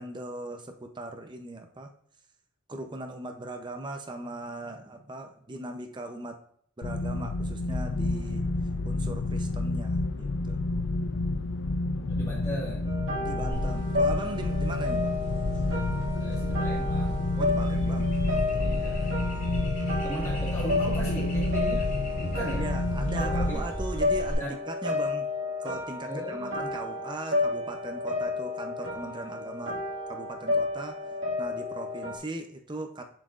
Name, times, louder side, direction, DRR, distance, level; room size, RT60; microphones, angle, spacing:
voice 1, 0.0-1.9 2.7-6.4 6.8-8.5 8.8-10.6 13.2-15.2 17.4-18.7 22.6-25.3 25.6-29.8 30.1-31.0 31.4-33.0, right 1 dB, 25° right, 5 dB, 0.6 m, -39 dB
sound 1, 6.8-23.5, left 2 dB, 65° left, 0.5 m, -30 dB
voice 2, 12.0-12.9 16.2-17.2 18.6-19.1 20.0-21.8 22.2-22.7 23.2-23.6 24.4-24.6 26.1-26.6, equal, 15° left, -6 dB, 1.7 m, -37 dB
sound 2, 12.9-32.2, left 2 dB, 80° right, 1.9 m, -32 dB
sound 3, 13.5-24.3, equal, 40° left, 2.3 m, -35 dB
7.4 x 7.4 x 2.5 m, 0.64 s
head